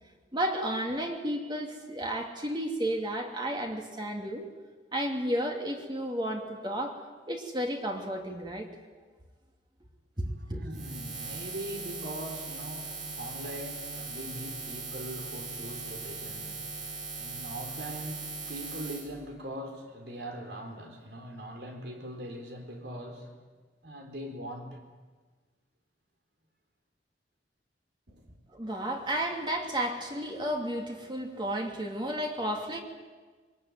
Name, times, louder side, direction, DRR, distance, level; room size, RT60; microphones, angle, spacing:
voice 1, 0.3-4.4 4.9-7.0 7.3-8.7 10.2-10.6 28.5-32.8, right 1 dB, 25° right, 2 dB, 2.5 m, -32 dB
voice 2, 10.4-23.3 23.8-24.8 28.1-28.3, right 1 dB, 65° right, 4 dB, 4.1 m, -41 dB
Buzz, 10.7-19.0, right 4 dB, 45° right, 5.5 m, -39 dB
22.5 x 20.5 x 9.2 m, 1.4 s
head